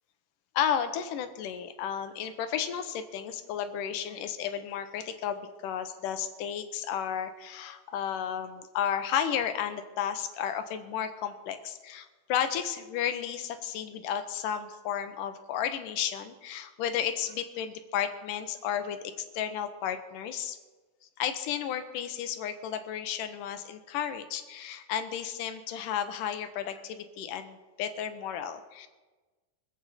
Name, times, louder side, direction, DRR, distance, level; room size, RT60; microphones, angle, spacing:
voice 1, 0.5-20.6 21.2-28.9, left 9 dB, 85° left, 9 dB, 2.5 m, -33 dB
24.5 x 8.4 x 4.2 m, 1.3 s
omnidirectional pair, 3.7 m